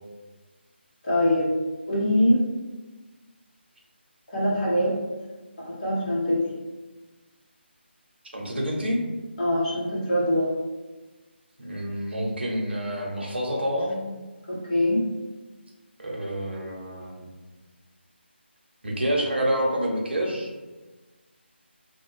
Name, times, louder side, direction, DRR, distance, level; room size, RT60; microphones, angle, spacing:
voice 1, 1.0-1.5 1.9-2.4 4.3-5.0 5.6-6.4 9.4-10.5 14.5-15.1, left 1 dB, 40° left, -7 dB, 1.2 m, -23 dB
voice 2, 8.3-9.0 11.6-14.0 16.0-17.3 18.8-20.5, equal, 65° right, -1 dB, 0.8 m, -28 dB
2.5 x 2.2 x 3.1 m, 1.2 s
figure-of-eight pair, 155°, 6 cm